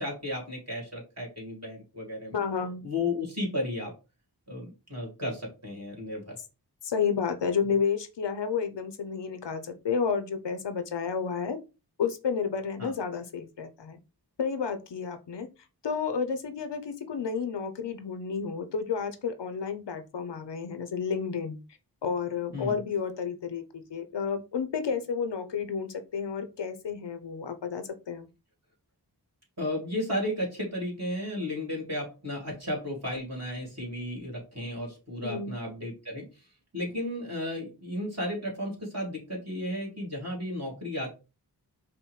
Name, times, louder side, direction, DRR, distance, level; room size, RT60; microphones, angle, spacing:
voice 1, 0.0-2.4 2.8-3.9 4.5-6.4 12.8-12.9 22.5-22.8 29.6-36.3 36.7-41.1, left 1 dB, 40° right, -2 dB, 2.2 m, -34 dB
voice 2, 2.3-2.8 6.8-11.6 12.0-14.0 14.4-15.5 15.8-21.6 22.0-28.3 35.2-35.5, left 6 dB, 85° left, 9 dB, 0.6 m, -31 dB
5.4 x 2.1 x 3.1 m, 0.30 s
wide cardioid pair, 45°, 41 cm